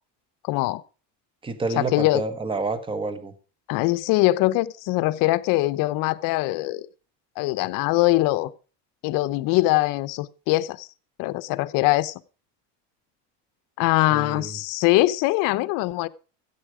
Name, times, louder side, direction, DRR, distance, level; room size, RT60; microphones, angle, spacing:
voice 1, 0.4-0.8 1.8-2.2 3.7-6.9 7.4-8.5 9.0-10.9 11.2-12.1 13.8-16.1, left 18 dB, 65° left, 0.8 m, -22 dB
voice 2, 1.4-3.3 14.1-14.5, right 3 dB, 15° right, 1.3 m, -28 dB
14.0 x 8.2 x 4.8 m
cardioid pair, 145°, 35 cm